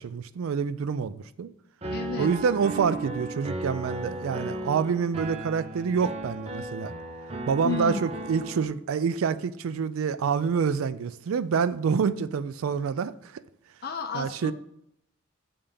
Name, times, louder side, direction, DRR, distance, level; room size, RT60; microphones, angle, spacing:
voice 1, 0.0-1.5 2.2-6.9 7.5-13.3 14.1-14.5, right 6 dB, 85° right, 0.4 m, -27 dB
Piano, 1.8-8.7, right 1 dB, 30° right, 0.6 m, -35 dB
voice 2, 1.9-2.3 7.6-8.0 13.8-14.5, left 4 dB, 50° left, 0.5 m, -32 dB
7.0 x 3.4 x 5.5 m
head